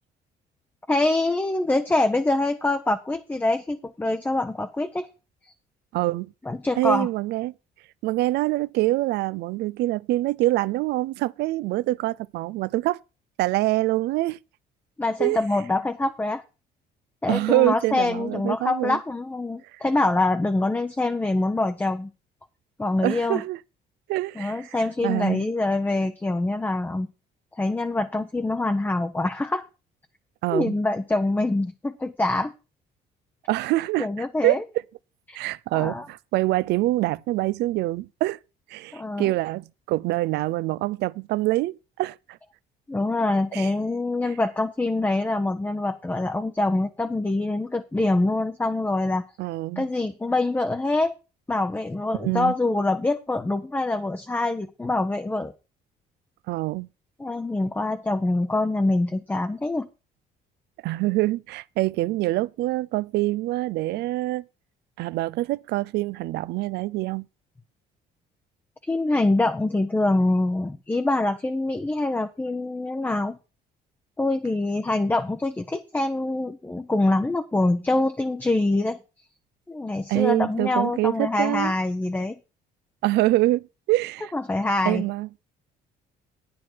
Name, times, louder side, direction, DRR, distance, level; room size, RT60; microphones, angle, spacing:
voice 1, 0.9-5.1 6.5-7.1 15.0-16.4 17.2-22.1 22.8-23.4 24.4-27.1 27.6-29.7 30.5-32.5 34.0-34.6 35.3-35.4 35.7-36.1 38.9-39.3 42.9-49.2 49.8-51.1 51.5-55.5 57.2-59.9 68.8-73.4 74.2-79.0 79.7-82.4 84.3-85.0, left 2 dB, 10° left, 0.7 m, -25 dB
voice 2, 5.9-6.3 6.8-7.5 8.0-13.0 13.4-14.4 15.2-15.4 17.3-19.0 19.7-19.8 23.0-23.6 24.1-24.8 25.0-25.4 30.4-30.7 33.5-34.6 35.3-38.4 38.7-42.4 43.5-43.7 49.4-49.8 52.2-52.5 56.5-56.9 60.8-64.4 65.0-67.3 80.1-81.7 83.0-84.3 84.9-85.3, right 18 dB, 80° right, 0.5 m, -25 dB
9.5 x 9.3 x 4.5 m
cardioid pair, 110°, 17 cm